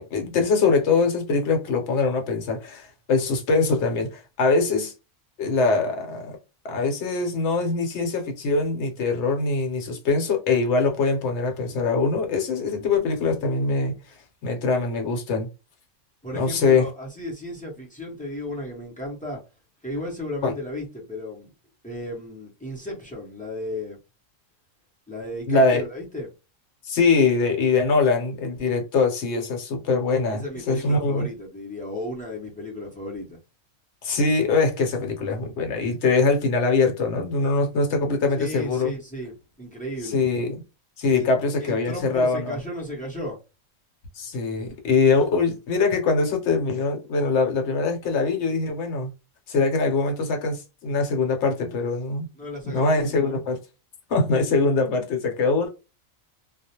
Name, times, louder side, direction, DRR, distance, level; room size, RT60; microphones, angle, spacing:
voice 1, 0.0-4.9 5.4-6.4 6.6-14.0 14.4-15.5 16.3-16.9 20.4-20.5 25.5-25.8 26.8-31.3 34.0-38.9 40.1-40.6 41.0-42.6 44.1-49.1 49.5-52.3 52.6-53.6 54.1-55.7, left 4 dB, 60° left, 0.9 m, -23 dB
voice 2, 16.2-19.4 19.8-21.5 21.8-24.0 25.1-26.3 30.3-33.4 38.3-40.2 41.1-41.3 41.6-43.4 52.4-53.4, left 1 dB, 10° left, 0.4 m, -34 dB
2.3 x 2.0 x 2.8 m
omnidirectional pair, 1.4 m